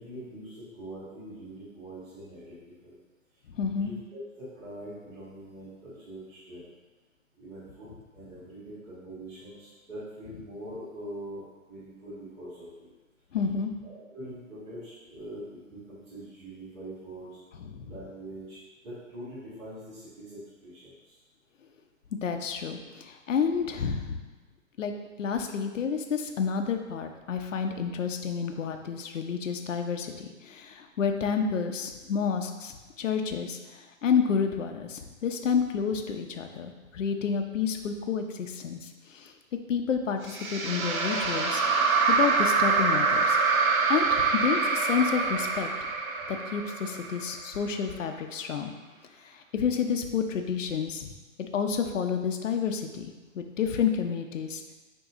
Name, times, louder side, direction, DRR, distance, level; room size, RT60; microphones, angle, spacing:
voice 1, 0.0-3.0 3.8-6.7 7.4-12.9 13.8-17.4 17.8-21.2, right 1 dB, 15° right, -14 dB, 2.0 m, -43 dB
voice 2, 3.5-3.9 13.3-13.7 17.6-17.9 22.2-24.2 24.8-24.9 25.2-39.3 39.7-43.4 43.9-45.7 46.3-48.7 49.2-51.1 51.5-54.7, left 6 dB, 65° left, 5 dB, 0.9 m, -30 dB
sound 1, 40.3-47.6, right 4 dB, 85° right, 1.0 m, -25 dB
9.1 x 3.1 x 3.7 m, 1.2 s
hypercardioid pair, 155°, 41 cm